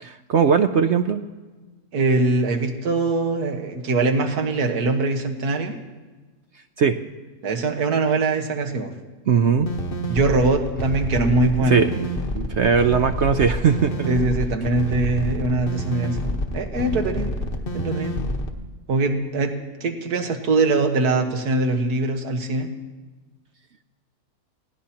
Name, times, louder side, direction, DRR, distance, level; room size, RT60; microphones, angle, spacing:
voice 1, 0.0-1.2 6.8-7.0 9.3-9.7 11.7-12.0 12.3-14.1, right 6 dB, 60° right, 8 dB, 0.8 m, -19 dB
voice 2, 1.9-5.8 7.4-8.9 10.1-11.8 14.1-17.3 17.7-18.2 18.9-19.5 19.8-22.7, right 3 dB, 90° right, 4 dB, 1.9 m, -22 dB
sound 1, 9.6-18.5, equal, 40° left, 1.3 m, -28 dB
27.0 x 17.5 x 2.9 m, 1.3 s
omnidirectional pair, 1.6 m